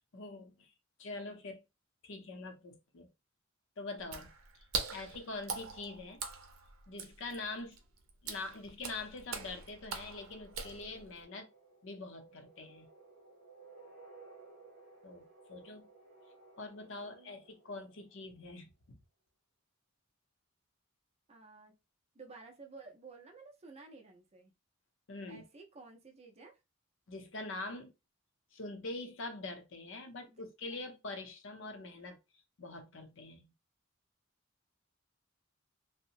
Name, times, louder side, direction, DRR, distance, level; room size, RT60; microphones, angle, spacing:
voice 1, 0.1-0.7 1.0-1.6 2.0-3.1 3.8-4.3 4.9-6.2 6.9-7.8 8.2-11.5 11.8-12.9 15.0-15.8 16.6-19.0 25.1-25.4 27.1-27.9 28.5-32.2 32.6-33.5, left 3 dB, 65° left, 0.6 m, -44 dB
Water / Splash splatter, 4.0-11.2, right 5 dB, 85° right, 0.6 m, -43 dB
sound 1, 9.8-18.4, right 3 dB, 60° right, 0.8 m, -58 dB
voice 2, 16.8-17.4 21.3-21.7 22.1-24.5 25.3-26.6 30.3-30.4 30.7-30.9, right 3 dB, 30° right, 0.5 m, -54 dB
2.8 x 2.0 x 2.5 m
head